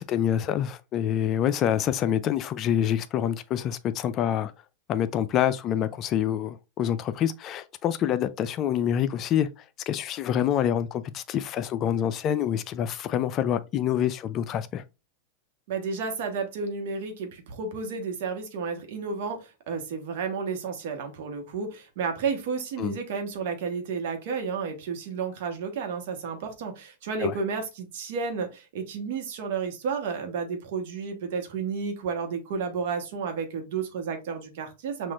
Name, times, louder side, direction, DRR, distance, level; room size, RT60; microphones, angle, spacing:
voice 1, 0.0-4.5 4.9-9.5 9.9-14.8 22.8-22.9 27.2-27.3, left 10 dB, 40° left, 0.4 m, -26 dB
voice 2, 15.7-35.1, right 5 dB, 65° right, 1.1 m, -32 dB
5.8 x 2.4 x 2.4 m
hypercardioid pair, 100°, 0 cm